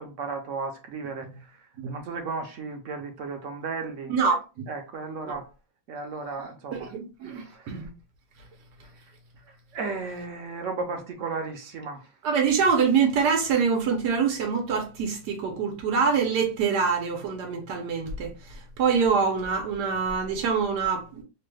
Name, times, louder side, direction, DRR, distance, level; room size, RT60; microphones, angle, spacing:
voice 1, 0.0-4.1 4.7-5.5 5.9-6.9 7.3-7.9 9.4-12.1, right 4 dB, 65° right, 0.9 m, -35 dB
voice 2, 4.1-4.4 5.3-5.4 6.9-7.9 12.2-21.2, right 6 dB, 85° right, 1.3 m, -25 dB
3.2 x 2.2 x 3.1 m
omnidirectional pair, 1.8 m